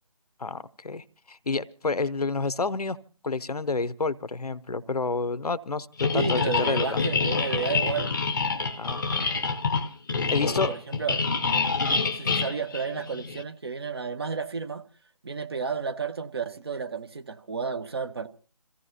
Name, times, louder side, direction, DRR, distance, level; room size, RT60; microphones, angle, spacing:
voice 1, 0.4-3.0 3.2-7.0 8.8-9.3 10.3-10.7 11.8-12.0, left 3 dB, 75° left, 0.7 m, -29 dB
sound 1, 6.0-13.4, left 4 dB, 30° left, 0.6 m, -27 dB
voice 2, 6.1-8.1 10.1-11.2 12.0-14.8 15.2-18.3, right 5 dB, 40° right, 0.8 m, -32 dB
27.0 x 15.5 x 2.8 m
figure-of-eight pair, 155°, 20 cm